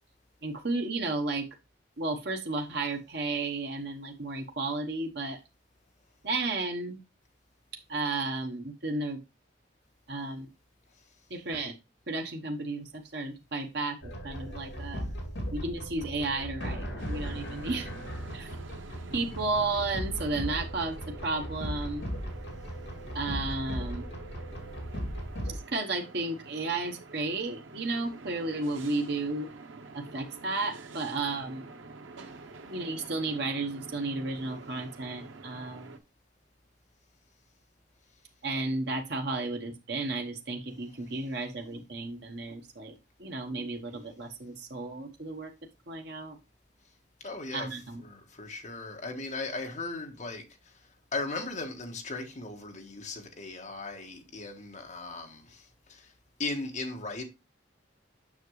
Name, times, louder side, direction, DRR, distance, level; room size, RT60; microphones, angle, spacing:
voice 1, 0.4-1.4 2.0-5.4 6.2-7.0 7.9-9.2 10.1-10.5 11.3-11.7 12.1-15.0 15.5-17.9 18.3-18.5 19.1-22.1 23.1-24.0 25.5-29.5 29.9-31.7 32.7-35.9 38.4-45.5 45.9-46.4 47.5-48.0, right 3 dB, 60° right, 1.1 m, -33 dB
sound 1, 14.0-25.6, equal, 65° left, 2.5 m, -37 dB
sound 2, 17.0-36.0, right 3 dB, 90° right, 0.8 m, -48 dB
voice 2, 47.2-47.7 48.0-50.4 51.1-55.6 55.9-56.1 56.4-57.2, left 3 dB, 40° left, 1.4 m, -37 dB
7.2 x 6.0 x 3.1 m
head